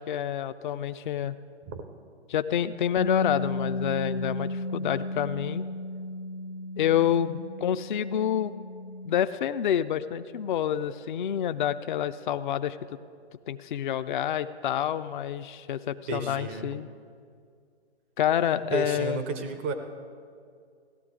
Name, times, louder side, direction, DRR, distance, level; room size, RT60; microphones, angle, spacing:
voice 1, 0.0-1.4 2.3-5.6 6.8-8.5 9.1-13.0 13.5-16.9 18.2-19.2, left 10 dB, 50° left, 12 dB, 0.4 m, -28 dB
Bass guitar, 3.0-9.2, left 2 dB, 85° left, 1.0 m, -34 dB
voice 2, 16.1-16.8 18.7-19.7, right 4 dB, 10° right, 7 dB, 0.3 m, -32 dB
17.0 x 12.5 x 3.7 m, 2.2 s
figure-of-eight pair, 125°, 33 cm